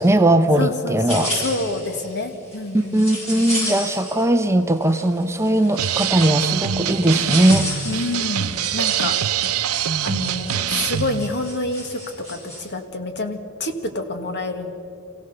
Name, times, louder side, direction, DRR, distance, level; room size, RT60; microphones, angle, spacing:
voice 1, 0.0-1.3 2.7-7.7, right 1 dB, 10° right, 8 dB, 0.7 m, -19 dB
voice 2, 0.5-3.1 7.8-9.2 10.0-14.7, left 2 dB, 50° left, 7 dB, 1.7 m, -28 dB
sound 1, 1.1-4.4 4.8-12.6, equal, 30° left, 7.3 m, -33 dB
sound 2, 5.8-11.3, right 9 dB, 75° right, 0.7 m, -24 dB
27.0 x 16.5 x 6.7 m, 2.6 s
head